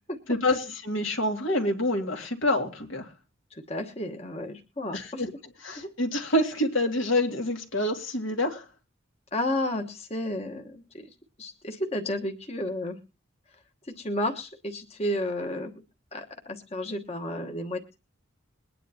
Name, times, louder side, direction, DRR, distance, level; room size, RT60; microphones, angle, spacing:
voice 1, 0.3-3.1 4.9-5.3 5.6-8.6, left 1 dB, 75° left, 4 dB, 2.2 m, -27 dB
voice 2, 3.5-5.2 5.8-5.9 9.3-10.8 11.4-13.0 14.0-15.7 16.1-17.8, left 1 dB, 30° left, 4 dB, 1.2 m, -32 dB
22.0 x 10.0 x 2.8 m, 0.32 s
head